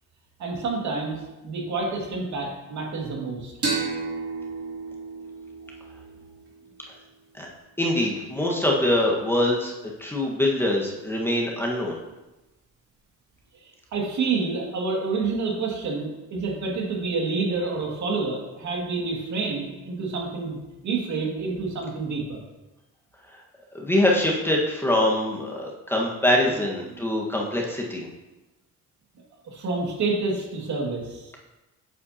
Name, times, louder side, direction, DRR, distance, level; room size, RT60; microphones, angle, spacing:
voice 1, 0.4-3.5 13.6-22.4 26.4-26.6 26.9-27.0 29.4-31.3, right 4 dB, 70° right, -1 dB, 2.2 m, -28 dB
sound 1, 3.6-7.0, right 4 dB, 50° right, 2.9 m, -32 dB
voice 2, 7.8-9.7 10.0-12.0 23.7-28.1, left 1 dB, 5° left, -2 dB, 1.4 m, -23 dB
8.3 x 7.8 x 2.8 m, 1.1 s
cardioid pair, 90°, 30 cm